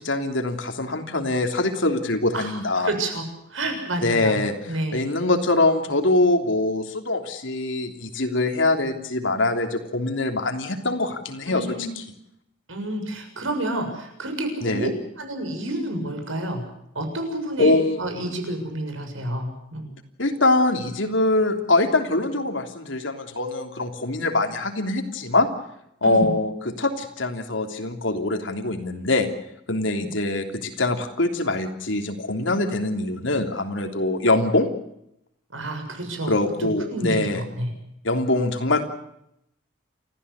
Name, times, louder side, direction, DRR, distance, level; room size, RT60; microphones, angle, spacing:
voice 1, 0.0-2.9 4.0-12.0 14.6-14.9 17.6-18.0 20.2-25.5 26.0-29.3 29.7-34.7 36.3-37.4 38.0-38.8, left 2 dB, 75° left, 5 dB, 3.3 m, -23 dB
voice 2, 2.3-3.2 3.5-5.1 11.5-11.9 12.7-14.9 15.2-16.6 17.0-17.7 18.0-19.9 26.0-26.3 29.9-30.1 35.5-36.3 36.6-37.7, right 1 dB, 85° right, 5 dB, 7.0 m, -29 dB
29.5 x 14.5 x 8.3 m, 0.79 s
head